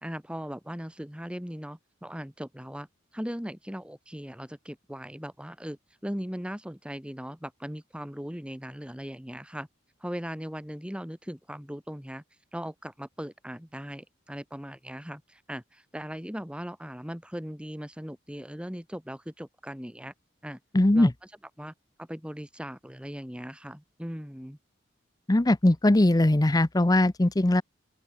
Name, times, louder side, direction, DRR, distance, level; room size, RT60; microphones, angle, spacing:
voice 1, 0.0-2.9 3.1-9.7 10.0-12.2 12.5-20.1 20.4-20.6 20.9-21.1 21.6-21.7 22.0-24.6, equal, 5° right, 1.9 m, -38 dB
voice 2, 20.7-21.1 25.3-27.6, left 1 dB, 20° left, 0.6 m, -20 dB
open air
head